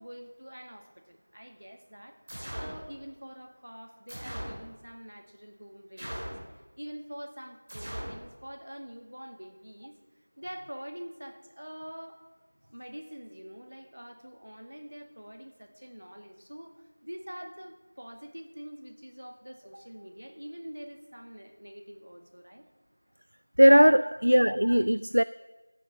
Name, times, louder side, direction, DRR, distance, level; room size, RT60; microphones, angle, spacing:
voice 1, 0.0-2.2 2.5-6.4 6.8-10.0 10.4-12.2 12.7-22.7 24.0-24.2, equal, 70° right, 2.1 m, -45 dB
sound 1, 2.3-2.8 4.1-4.6 6.0-6.5 7.7-8.2, equal, 25° right, 2.6 m, -38 dB
voice 2, 23.6-25.2, equal, 85° right, 0.3 m, -19 dB
13.0 x 9.1 x 6.2 m
figure-of-eight pair, 180°, 0 cm